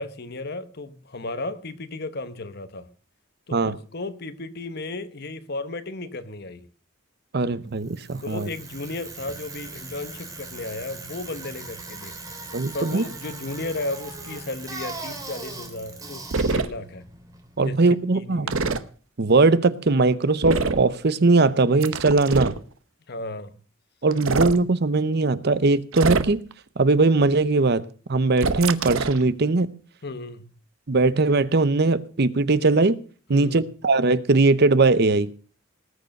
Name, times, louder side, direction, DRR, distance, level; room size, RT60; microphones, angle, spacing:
voice 1, 0.0-2.9 3.5-6.7 8.2-12.2 12.7-17.0 17.6-17.8 18.1-18.7 23.1-23.5 30.0-30.5 33.3-33.7, left 2 dB, 55° left, 12 dB, 1.1 m, -34 dB
voice 2, 7.3-8.5 12.5-13.0 17.6-18.5 19.2-22.6 24.0-26.4 26.8-27.8 28.1-29.7 30.9-33.0 33.3-35.3, right 3 dB, 55° right, 16 dB, 0.7 m, -20 dB
Bicycle, 7.8-17.8, right 3 dB, 15° right, 3.2 m, -39 dB
sound 1, 16.3-16.7 18.5-18.8 20.4-20.9 21.8-22.6 24.1-24.6 25.9-26.5 28.4-29.2, right 4 dB, 85° right, 0.9 m, -24 dB
19.0 x 6.7 x 6.5 m, 0.40 s
head